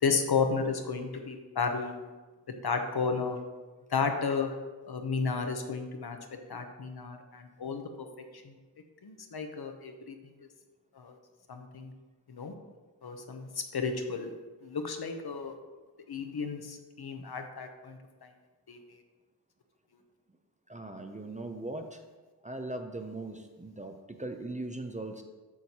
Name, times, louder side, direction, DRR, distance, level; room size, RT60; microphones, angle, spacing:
voice 1, 0.0-2.0 2.6-3.4 3.9-4.5 4.9-6.2 6.5-8.1 8.3-8.6 9.0-10.3 10.9-11.2 11.5-11.9 12.3-12.5 13.0-14.3 14.6-15.5 16.1-18.3 18.7-18.8, left 5 dB, 65° left, 5 dB, 0.8 m, -33 dB
voice 2, 20.7-22.0 22.4-25.2, right 2 dB, 20° right, 5 dB, 0.5 m, -39 dB
8.3 x 6.3 x 2.8 m, 1.3 s
wide cardioid pair, 95°, 41 cm